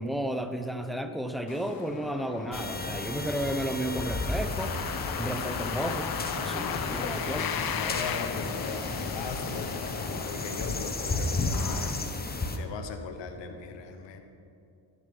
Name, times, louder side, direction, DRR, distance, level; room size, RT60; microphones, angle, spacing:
voice 1, 0.0-4.7 5.2-7.5, right 1 dB, ahead, 8 dB, 0.9 m, -33 dB
sound 1, 1.5-12.6, left 7 dB, 50° left, 1.0 m, -36 dB
sound 2, 2.5-12.6, left 2 dB, 20° left, 1.2 m, -33 dB
voice 2, 7.2-9.7 10.2-14.2, left 5 dB, 65° left, 6 dB, 1.3 m, -39 dB
11.5 x 11.0 x 5.5 m, 2.6 s
cardioid pair, 75°, 46 cm